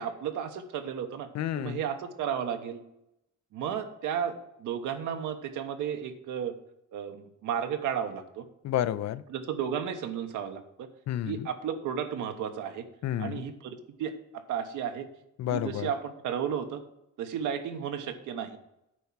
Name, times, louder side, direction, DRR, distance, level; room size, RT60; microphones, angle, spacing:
voice 1, 0.0-1.3 1.5-2.8 3.5-6.5 6.9-8.5 9.3-10.9 11.3-12.9 13.2-15.1 15.5-16.8 17.2-18.6, right 8 dB, 85° right, 7 dB, 1.1 m, -33 dB
voice 2, 1.3-1.8 8.6-9.2 11.1-11.5 13.0-13.4 15.4-15.9, left 11 dB, 60° left, 15 dB, 0.5 m, -30 dB
9.0 x 4.6 x 7.2 m, 0.85 s
cardioid pair, 90°, 30 cm